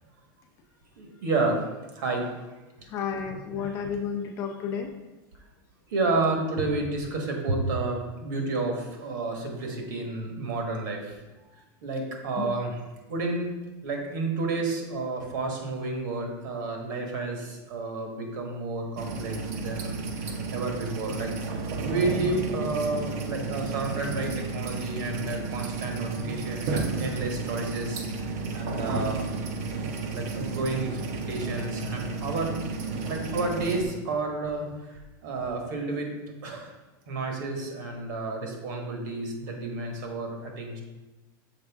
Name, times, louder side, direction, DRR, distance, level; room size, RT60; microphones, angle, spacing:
voice 1, 1.0-1.6 1.9-2.3 3.2-3.7 5.9-11.2 11.5-12.8 13.1-13.5 13.8-20.0 20.2-28.0 28.5-29.3 30.0-31.0 31.3-32.6 33.1-36.1 36.4-36.7 37.1-40.8, right 3 dB, 65° right, 2 dB, 1.4 m, -31 dB
voice 2, 2.9-4.9 12.4-12.5, left 7 dB, 25° left, 4 dB, 0.5 m, -32 dB
sound 1, 19.0-33.8, right 3 dB, 50° right, 0.6 m, -32 dB
6.6 x 4.6 x 3.5 m, 1.1 s
supercardioid pair, 175°, 11 cm